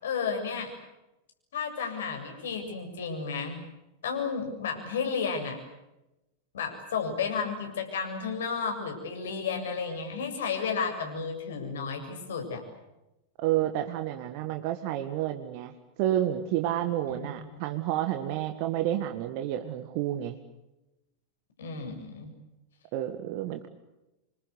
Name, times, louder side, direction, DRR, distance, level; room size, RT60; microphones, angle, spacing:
voice 1, 0.0-0.7 1.5-3.6 4.0-5.6 6.5-12.6 17.1-17.5 21.6-22.3, left 5 dB, 60° left, 4 dB, 7.3 m, -32 dB
voice 2, 13.4-15.7 16.0-20.4 22.9-23.7, right 12 dB, 45° right, 6 dB, 1.7 m, -30 dB
27.5 x 24.5 x 8.2 m, 0.96 s
figure-of-eight pair, 90°, 0 cm